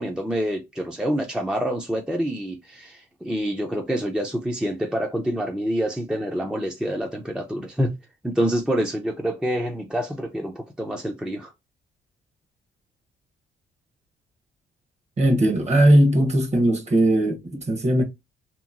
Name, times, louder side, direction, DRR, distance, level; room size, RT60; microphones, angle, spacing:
voice 1, 0.0-7.9 8.2-11.5, equal, 5° right, 0.5 m, -27 dB
voice 2, 15.2-18.0, right 1 dB, 35° right, 1.0 m, -19 dB
2.9 x 2.6 x 2.4 m
cardioid pair, 90°, 20 cm